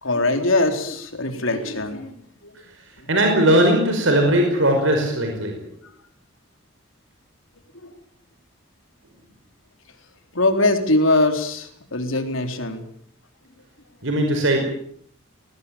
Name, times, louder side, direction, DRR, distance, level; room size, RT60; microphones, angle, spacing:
voice 1, 0.0-2.1 10.3-12.8, left 2 dB, 75° left, 6 dB, 3.9 m, -21 dB
voice 2, 3.1-5.6 14.0-14.6, right 1 dB, 65° right, 3 dB, 5.4 m, -18 dB
21.0 x 20.0 x 8.9 m, 0.65 s
head